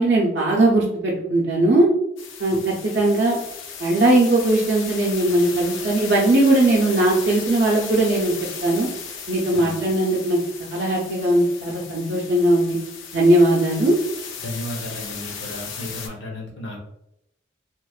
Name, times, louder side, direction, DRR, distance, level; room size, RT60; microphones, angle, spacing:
voice 1, 0.0-1.9 2.4-3.4 3.8-8.3 8.6-8.9 9.3-12.8 13.1-13.9, right 1 dB, 60° right, -4 dB, 0.5 m, -19 dB
sound 1, 2.2-16.1, left 6 dB, 90° left, 0.4 m, -36 dB
voice 2, 14.4-16.9, left 1 dB, 70° left, -1 dB, 0.8 m, -34 dB
2.9 x 2.1 x 2.3 m, 0.82 s
head